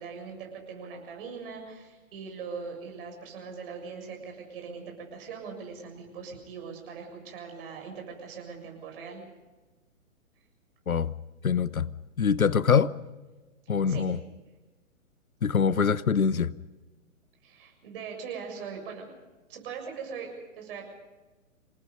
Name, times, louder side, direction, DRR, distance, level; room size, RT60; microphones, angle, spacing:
voice 1, 0.0-9.2 13.7-14.1 17.4-19.1 19.5-20.9, right 5 dB, 40° right, 7.2 m, -41 dB
voice 2, 11.4-11.9 12.2-12.9 13.7-14.2 15.4-16.5, left 6 dB, 80° left, 0.9 m, -24 dB
27.5 x 19.0 x 5.5 m
figure-of-eight pair, 125°, 41 cm